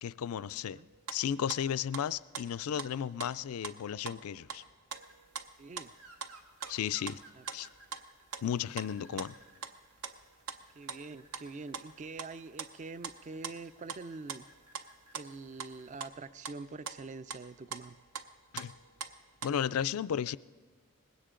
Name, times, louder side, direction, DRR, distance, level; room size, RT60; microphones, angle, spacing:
voice 1, 0.0-0.8 1.1-4.6 6.7-7.2 7.5-7.7 8.4-9.3 18.5-18.7 19.4-20.4, left 9 dB, 70° left, 0.4 m, -34 dB
sound 1, 0.9-1.2 1.5-2.1 2.3-3.8 4.1-5.9 6.2-6.3 6.6-8.0 8.3-8.9 9.2-9.7 10.0-10.6 10.9-12.3 12.6-14.0 14.3-15.7 16.0-16.2 16.4-16.6 16.9-18.3 18.6-19.7, right 6 dB, 70° right, 0.8 m, -43 dB
sound 2, 5.0-16.1, right 3 dB, 90° right, 1.8 m, -61 dB
voice 2, 5.6-5.9 7.4-7.5 9.1-9.2 10.7-14.4 15.1-18.0, right 3 dB, 35° right, 0.4 m, -45 dB
20.0 x 17.0 x 3.8 m
head